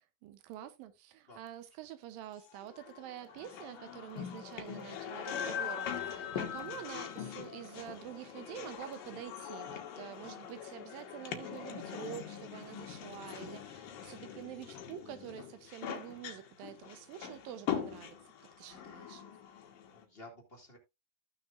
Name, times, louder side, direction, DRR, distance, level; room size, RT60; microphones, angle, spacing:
voice 1, 0.0-18.2 18.6-19.2, right 11 dB, 80° right, 2.6 m, -47 dB
sound 1, 2.5-20.0, left 8 dB, 75° left, 2.9 m, -42 dB
voice 2, 19.9-20.8, left 2 dB, 20° left, 2.2 m, -53 dB
15.0 x 6.4 x 2.5 m
omnidirectional pair, 4.1 m